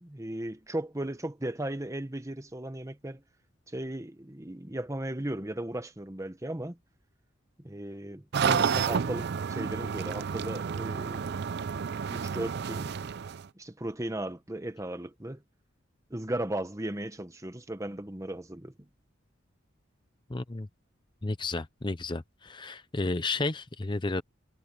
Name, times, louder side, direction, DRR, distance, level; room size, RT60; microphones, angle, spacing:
voice 1, 0.0-3.2 3.7-6.8 7.6-11.4 12.1-12.9 13.5-15.4 16.1-18.9, right 1 dB, 15° right, 1.2 m, -36 dB
sound 1, 8.3-13.4, right 6 dB, 60° right, 0.4 m, -30 dB
voice 2, 20.3-20.7 21.2-24.2, left 3 dB, 25° left, 0.7 m, -32 dB
head